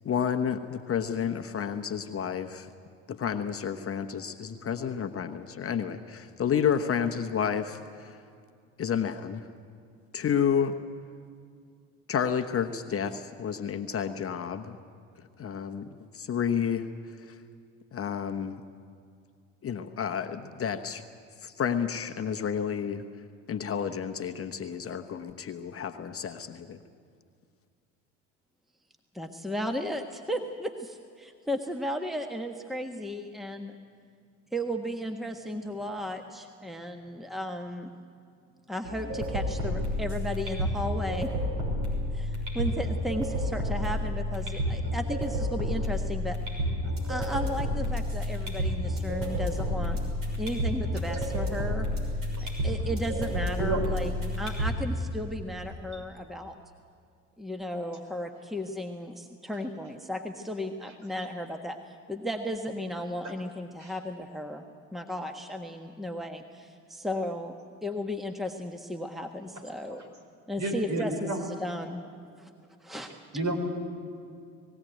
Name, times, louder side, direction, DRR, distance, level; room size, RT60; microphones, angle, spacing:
voice 1, 0.0-2.7 3.1-8.2 8.8-9.4 10.1-10.7 12.1-14.8 15.4-15.9 16.1-17.4 17.9-18.6 19.6-21.0 21.4-23.0 23.5-26.8, left 7 dB, 35° left, 7 dB, 1.0 m, -30 dB
voice 2, 29.1-33.7 34.5-37.9 38.7-41.3 42.1-46.4 47.1-50.0 50.4-51.9 52.4-56.6 57.4-64.6 64.9-67.5 67.8-70.0 70.5-72.0 72.4-72.5 72.8-73.2, equal, ahead, 5 dB, 1.4 m, -35 dB
sound 1, 38.8-54.8, equal, 60° right, 6.2 m, -30 dB
voice 3, 70.6-71.4 73.3-73.5, right 2 dB, 45° right, 3 dB, 4.7 m, -30 dB
20.5 x 16.0 x 9.3 m, 2.3 s
hypercardioid pair, 60°, 39 cm